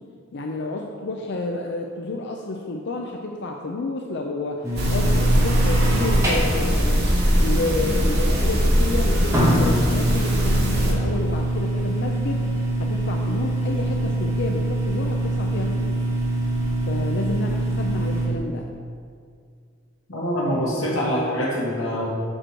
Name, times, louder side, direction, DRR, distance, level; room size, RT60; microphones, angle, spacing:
voice 1, 0.3-16.0 16.9-18.7, left 2 dB, 60° left, 2 dB, 0.5 m, -30 dB
sound 1, 4.6-18.3, right 1 dB, 15° right, 1.6 m, -25 dB
sound 2, 4.8-10.9, equal, 55° right, 1.5 m, -21 dB
voice 2, 20.1-22.1, equal, 85° left, -5 dB, 2.2 m, -24 dB
7.7 x 6.2 x 4.5 m, 2.1 s
head